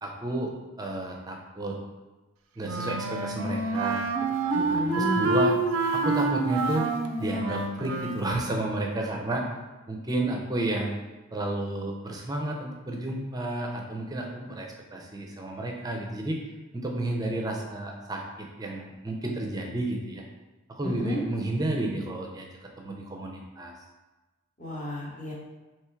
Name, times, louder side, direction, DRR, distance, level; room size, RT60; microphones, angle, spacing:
voice 1, 0.0-0.5 0.8-1.8 2.6-4.0 4.3-5.5 5.9-6.9 7.2-9.5 9.9-11.0 11.3-16.4 16.7-20.2 20.7-22.5 22.8-23.7, right 2 dB, 20° right, 0 dB, 0.5 m, -31 dB
Wind instrument woodwind instrument, 2.6-8.3, right 3 dB, 70° right, 0.4 m, -27 dB
voice 2, 4.5-5.3 20.8-21.2 24.6-25.3, left 1 dB, 35° left, -4 dB, 0.9 m, -32 dB
3.5 x 3.1 x 4.4 m, 1.2 s
head